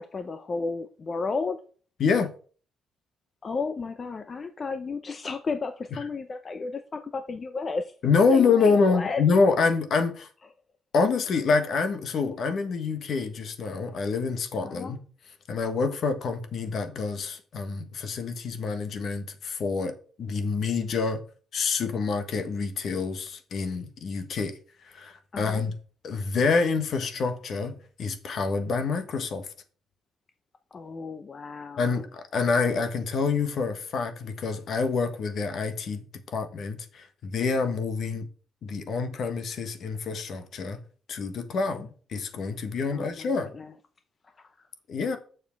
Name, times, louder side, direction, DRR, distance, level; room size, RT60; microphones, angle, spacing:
voice 1, 0.0-1.6 3.4-7.9 8.3-9.2 14.6-15.0 25.3-25.6 30.7-32.0 41.6-41.9 42.9-43.7 44.2-44.7, left 4 dB, 30° left, 0.6 m, -33 dB
voice 2, 2.0-2.3 8.0-10.3 10.9-15.0 15.5-21.2 21.5-25.7 26.0-29.5 31.8-36.1 36.3-38.3 38.6-40.8 41.1-43.5 44.9-45.2, left 4 dB, 55° left, 1.4 m, -27 dB
7.4 x 6.6 x 4.6 m
cardioid pair, 135°, 0 cm